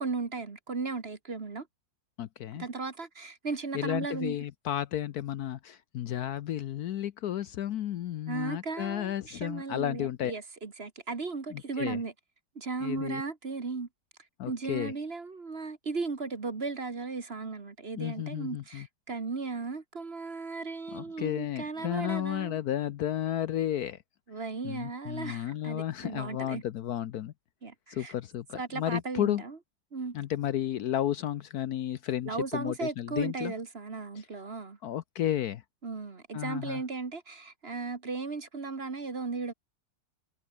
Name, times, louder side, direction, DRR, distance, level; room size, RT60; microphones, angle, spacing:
voice 1, 0.0-1.7 2.6-4.4 8.3-12.1 12.6-13.9 14.5-22.6 24.3-26.6 27.6-28.1 28.6-29.6 29.9-30.2 32.3-34.8 35.8-39.5, right 4 dB, 35° right, 1.7 m, -36 dB
voice 2, 2.2-2.7 3.7-10.3 11.5-12.0 12.8-13.2 14.4-14.9 18.0-18.9 20.9-24.0 24.6-27.3 27.9-29.4 30.1-33.5 34.8-35.6 36.3-36.8, left 11 dB, 65° left, 1.1 m, -32 dB
omnidirectional pair, 1.9 m